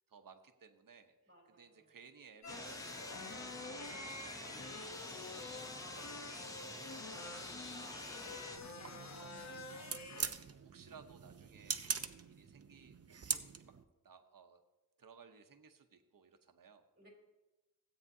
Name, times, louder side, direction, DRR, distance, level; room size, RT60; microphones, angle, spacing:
voice 1, 0.1-1.1 1.4-7.3 8.1-13.8 14.0-14.6 15.0-16.8, right 6 dB, 75° right, 7 dB, 0.9 m, -60 dB
voice 2, 1.3-2.0 7.7-8.8 16.9-17.1, right 1 dB, 30° right, -2 dB, 3.6 m, -61 dB
sound 1, 2.4-10.3, left 3 dB, 55° left, 0.9 m, -48 dB
sound 2, 2.5-8.6, left 1 dB, 10° left, 0.7 m, -48 dB
sound 3, 8.5-13.8, right 6 dB, 45° right, 0.6 m, -43 dB
16.0 x 8.7 x 2.7 m, 1.1 s
wide cardioid pair, 80°, 33 cm